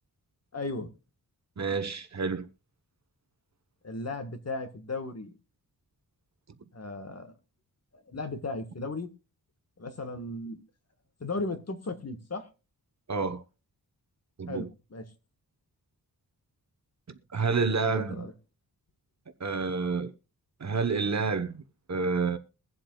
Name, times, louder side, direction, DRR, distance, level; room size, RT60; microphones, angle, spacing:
voice 1, 0.5-0.9 3.8-5.4 6.7-7.3 8.1-9.1 9.8-10.6 11.2-12.5 14.5-15.0 17.8-18.3, left 2 dB, 40° left, 1.5 m, -36 dB
voice 2, 1.6-2.5 13.1-13.4 14.4-14.7 17.1-18.3 19.4-20.1 20.6-21.6 21.9-22.4, right 4 dB, 45° right, 1.1 m, -29 dB
22.5 x 7.7 x 2.3 m
wide cardioid pair, 135°, 38 cm